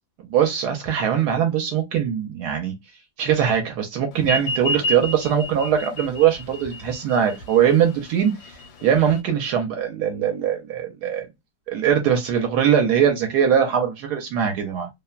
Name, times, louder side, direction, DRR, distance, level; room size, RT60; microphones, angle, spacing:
voice 1, 0.3-2.7 3.2-8.3 8.8-11.3 11.7-14.9, right 8 dB, 75° right, 1.1 m, -21 dB
sound 1, 4.2-9.2, left 1 dB, 75° left, 1.1 m, -30 dB
2.8 x 2.1 x 2.3 m
omnidirectional pair, 1.8 m